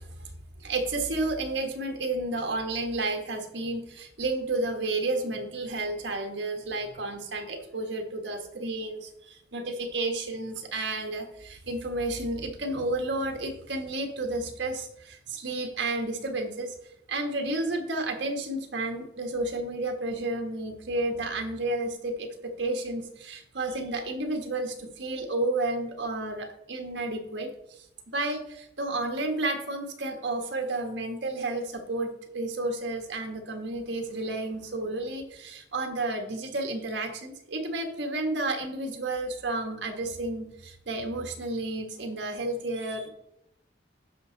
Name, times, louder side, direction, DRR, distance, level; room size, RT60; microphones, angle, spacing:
voice 1, 0.0-16.7 17.1-27.5 27.8-27.9 28.1-43.1, right 2 dB, 80° right, 4 dB, 1.4 m, -31 dB
11.0 x 5.4 x 3.9 m, 0.79 s
head